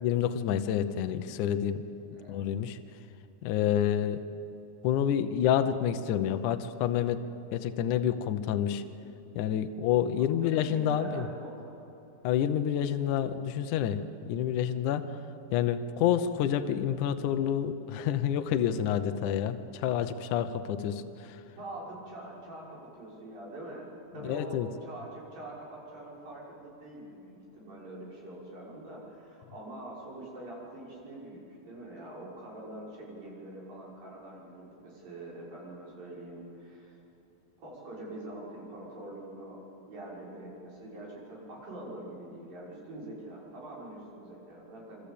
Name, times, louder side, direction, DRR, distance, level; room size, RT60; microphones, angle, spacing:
voice 1, 0.0-1.8 2.3-2.8 3.4-4.2 4.8-7.2 7.5-8.8 9.4-11.3 12.2-15.1 15.5-21.4 24.2-24.7, left 9 dB, 70° left, 9 dB, 2.3 m, -28 dB
voice 2, 10.2-11.8 21.6-23.9 24.1-37.0 37.6-45.1, right 1 dB, 85° right, -4 dB, 7.9 m, -44 dB
26.5 x 25.0 x 8.6 m, 2.9 s
omnidirectional pair, 3.9 m